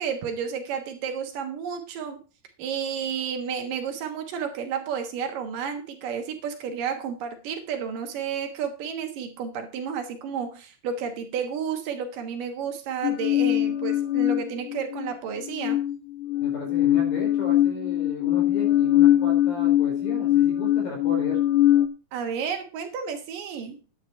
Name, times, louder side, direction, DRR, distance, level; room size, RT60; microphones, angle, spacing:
voice 1, 0.0-2.2 2.6-15.8 22.1-23.8, right 7 dB, 70° right, 5 dB, 2.9 m, -31 dB
sound 1, 13.0-15.1 15.4-21.9, left 13 dB, 90° left, 1.6 m, -22 dB
voice 2, 16.4-21.4, left 1 dB, 70° left, 0 dB, 6.3 m, -36 dB
10.5 x 9.0 x 4.4 m, 0.33 s
omnidirectional pair, 4.2 m